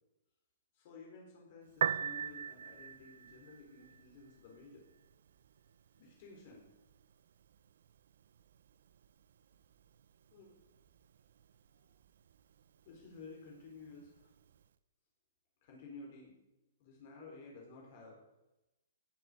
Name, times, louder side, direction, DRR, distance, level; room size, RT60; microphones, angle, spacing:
voice 1, 0.7-4.9 6.0-6.7 10.3-10.5 11.7-11.8 12.9-14.3 15.6-16.3 16.8-18.2, left 3 dB, 40° left, -1 dB, 4.4 m, -53 dB
Piano, 1.7-14.7, right 8 dB, 65° right, 0.8 m, -45 dB
16.5 x 8.7 x 8.8 m, 0.97 s
hypercardioid pair, 165°, 0 cm